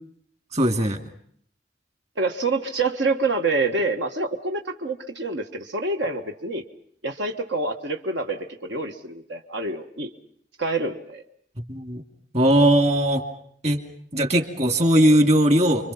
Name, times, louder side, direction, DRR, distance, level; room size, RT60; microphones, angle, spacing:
voice 1, 0.5-1.1 11.7-12.0 12.3-13.2 13.6-13.8 14.1-15.9, right 1 dB, 40° right, 6 dB, 2.6 m, -19 dB
voice 2, 2.2-6.6 7.0-10.1 10.6-11.2, right 3 dB, 80° right, 4 dB, 1.5 m, -27 dB
29.5 x 24.0 x 5.7 m, 0.64 s
head